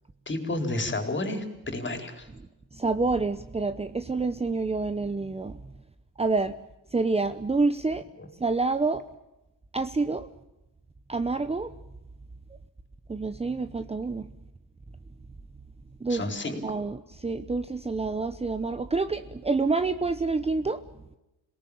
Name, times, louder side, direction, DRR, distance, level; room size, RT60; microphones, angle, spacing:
voice 1, 0.3-2.3 8.2-8.3 16.1-16.8, left 2 dB, 30° left, 6 dB, 4.3 m, -31 dB
voice 2, 2.7-5.7 6.2-6.6 6.9-8.0 8.4-9.1 9.7-10.3 11.1-11.7 13.1-14.3 16.0-16.2 16.6-20.8, right 3 dB, 15° right, 11 dB, 0.9 m, -27 dB
26.5 x 18.5 x 8.7 m, 0.97 s
cardioid pair, 110°, 38 cm